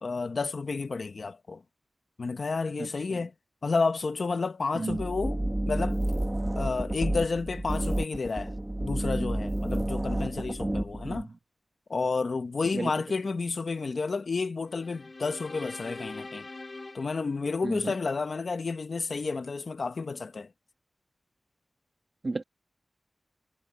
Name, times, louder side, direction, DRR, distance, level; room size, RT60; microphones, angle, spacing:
voice 1, 0.0-1.6 2.2-3.3 3.6-6.0 6.5-8.5 8.8-11.3 11.9-16.5 16.9-20.5, left 4 dB, 70° left, 1.1 m, -31 dB
sound 1, 4.9-11.2, right 1 dB, 20° right, 1.9 m, -30 dB
sound 2, 14.7-18.1, left 3 dB, 45° left, 3.3 m, -43 dB
voice 2, 17.6-17.9 22.2-22.4, right 3 dB, 45° right, 1.5 m, -32 dB
wide cardioid pair, 100°, 0 cm